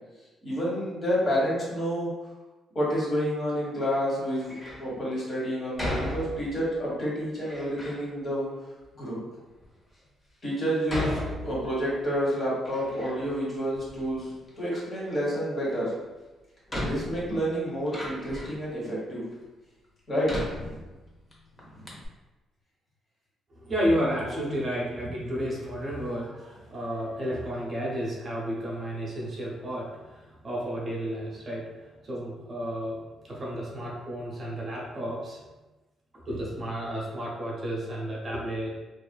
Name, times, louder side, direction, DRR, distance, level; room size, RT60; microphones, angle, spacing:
voice 1, 0.4-2.1 2.7-8.5 8.9-9.2 10.4-14.3 14.6-15.9 16.7-19.2 20.1-20.3 20.6-20.8 21.7-22.0, equal, 45° left, -6 dB, 1.3 m, -29 dB
Door, 4.4-4.9 5.8-6.7 7.4-8.0 8.8-8.9 9.6-9.7 10.9-12.0 12.4-13.4 13.7-14.6 15.9-16.0 16.7-18.7 19.3-19.4 20.2-21.3 21.6-21.7 21.9-22.1, left 1 dB, 20° left, 0.7 m, -35 dB
voice 2, 23.6-35.4 36.3-38.7, equal, 40° right, -4 dB, 0.7 m, -32 dB
2.7 x 2.3 x 2.2 m, 1.1 s
cardioid pair, 90°, 0 cm